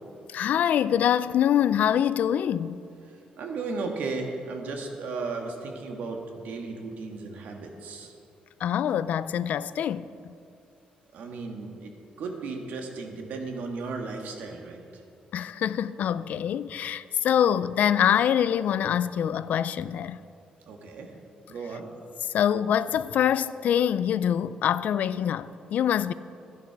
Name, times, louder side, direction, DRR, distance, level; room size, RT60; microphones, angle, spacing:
voice 1, 0.3-2.8 8.6-10.3 15.3-20.2 22.3-26.1, left 9 dB, 75° left, 0.3 m, -25 dB
voice 2, 3.1-8.1 11.1-11.9 12.2-15.0 20.7-21.1 21.5-21.8, right 3 dB, 80° right, 1.6 m, -35 dB
11.5 x 11.0 x 4.7 m
cardioid pair, 110°, 3 cm